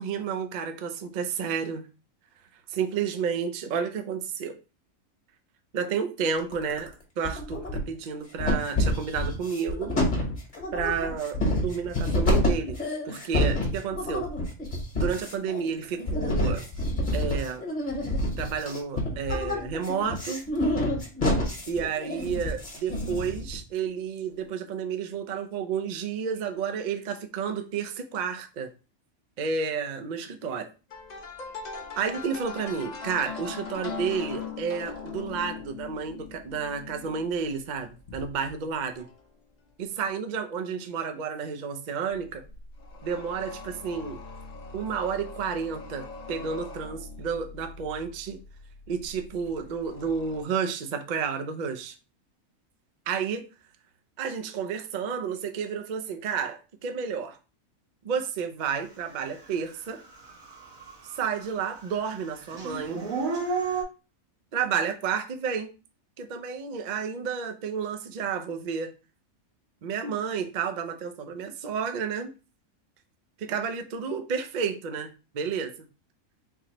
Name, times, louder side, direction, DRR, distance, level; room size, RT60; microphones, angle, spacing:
voice 1, 0.0-1.9 2.7-4.6 5.7-6.9 7.2-9.9 10.7-12.8 13.0-14.3 15.0-16.6 17.1-17.6 18.4-20.4 21.7-28.7 29.4-30.7 32.0-39.0 39.8-42.4 43.0-44.2 44.7-48.4 48.9-52.0 53.1-53.4 54.2-57.4 58.0-60.0 61.1-63.0 64.5-65.7 66.2-68.9 69.8-72.3 73.4-75.7, right 6 dB, 70° right, 0.4 m, -31 dB
sound 1, 6.4-6.9 7.2-8.1 8.4-23.6, left 1 dB, 35° left, 1.2 m, -28 dB
sound 2, 30.9-38.6 39.0-39.3 40.0-40.1 42.1-50.4, left 5 dB, 70° left, 0.4 m, -41 dB
Dog / Siren, 59.5-59.6 60.0-61.5 61.7-63.8, right 4 dB, 85° right, 1.4 m, -31 dB
3.8 x 2.8 x 2.9 m
omnidirectional pair, 1.4 m